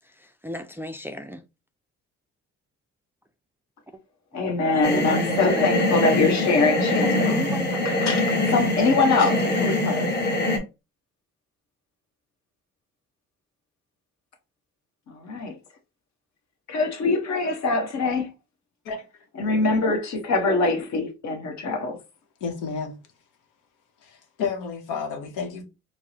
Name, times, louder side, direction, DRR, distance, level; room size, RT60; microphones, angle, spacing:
voice 1, 0.0-1.4 4.6-4.7 4.9-5.7 7.0-7.8, equal, 10° right, 0.3 m, -34 dB
voice 2, 4.3-7.4 7.8-10.1 15.1-15.5 16.7-18.3 19.4-22.0, left 3 dB, 65° left, 1.1 m, -23 dB
sound 1, 4.8-10.6, left 2 dB, 35° left, 1.2 m, -23 dB
voice 3, 18.8-19.3 22.4-23.0 24.0-25.6, left 5 dB, 90° left, 0.9 m, -31 dB
4.4 x 2.0 x 2.8 m
cardioid pair, 90°, 30 cm